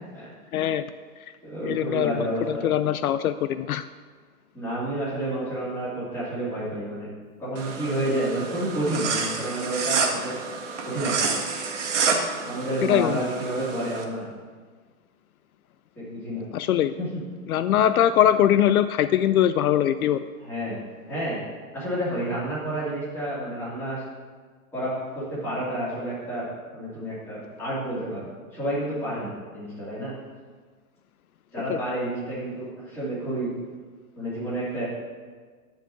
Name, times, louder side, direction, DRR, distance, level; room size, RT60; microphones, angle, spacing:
voice 1, 0.5-0.9 1.6-3.9 12.8-13.3 16.5-17.0 17.5-20.2 31.7-31.8, left 11 dB, 75° left, 13 dB, 0.5 m, -22 dB
voice 2, 1.4-2.7 4.5-7.1 7.4-10.3 10.8-11.4 12.4-14.3 16.0-16.4 17.0-17.1 20.4-20.8 21.1-21.4 21.7-24.0 24.7-26.5 26.7-30.1 31.5-33.5 34.2-34.9, right 1 dB, 5° left, -10 dB, 2.7 m, -30 dB
sound 1, 7.6-14.0, right 5 dB, 55° right, 1.5 m, -29 dB
10.5 x 4.7 x 7.7 m, 1.5 s
hypercardioid pair, 175°, 44 cm